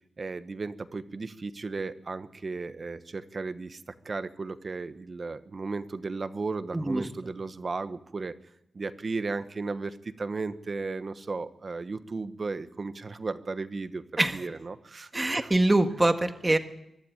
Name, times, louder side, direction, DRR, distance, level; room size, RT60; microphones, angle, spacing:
voice 1, 0.2-8.3 8.7-15.5, right 3 dB, 45° right, 11 dB, 1.2 m, -35 dB
voice 2, 6.7-7.1 14.2-14.4 15.1-16.6, right 2 dB, 20° right, 7 dB, 1.7 m, -24 dB
23.5 x 12.0 x 9.1 m, 0.84 s
wide cardioid pair, 90°, 0 cm